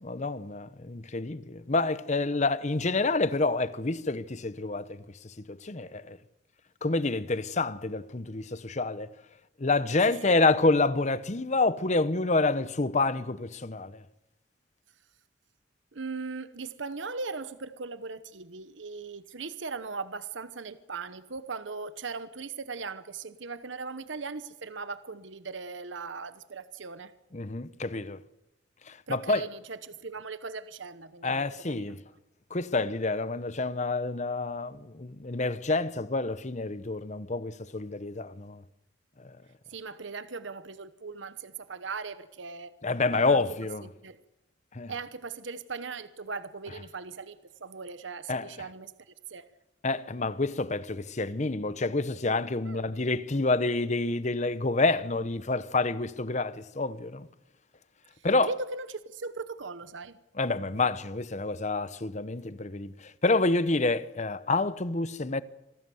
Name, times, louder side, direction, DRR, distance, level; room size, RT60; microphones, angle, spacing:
voice 1, 0.0-6.2 6.8-9.1 9.6-14.0 27.3-28.2 28.9-29.4 31.2-32.0 32.5-38.6 39.2-39.4 42.8-43.9 44.7-44.9 48.3-48.5 49.8-57.3 58.2-58.5 60.4-65.4, left 3 dB, 35° left, 0.9 m, -28 dB
voice 2, 10.0-10.4 15.9-27.1 29.1-31.8 39.7-42.7 43.1-43.4 43.8-44.2 44.9-48.9 49.3-49.4 52.6-52.8 58.2-60.2, right 4 dB, 70° right, 1.0 m, -39 dB
26.5 x 18.0 x 7.9 m
head